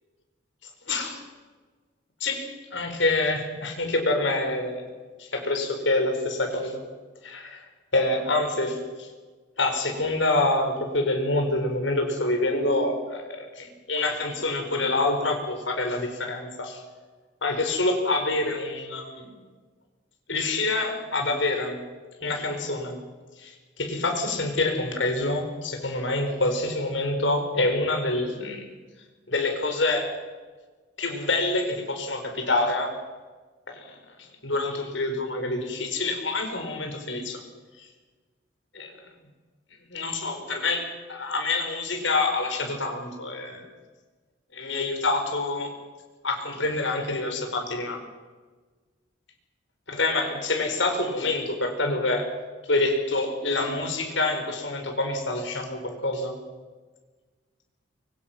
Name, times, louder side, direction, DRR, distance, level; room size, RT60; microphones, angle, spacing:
voice 1, 0.6-1.2 2.2-4.9 5.2-6.8 7.2-7.6 7.9-9.1 9.6-16.8 17.4-19.3 20.3-21.9 22.2-23.0 23.4-28.7 29.3-30.1 31.0-32.9 33.7-37.4 37.8-37.9 38.7-38.9 39.9-43.7 44.5-45.7 46.2-48.0 49.9-52.3 52.7-56.4, left 2 dB, 75° left, 4 dB, 4.7 m, -27 dB
25.0 x 24.5 x 6.0 m, 1.3 s
head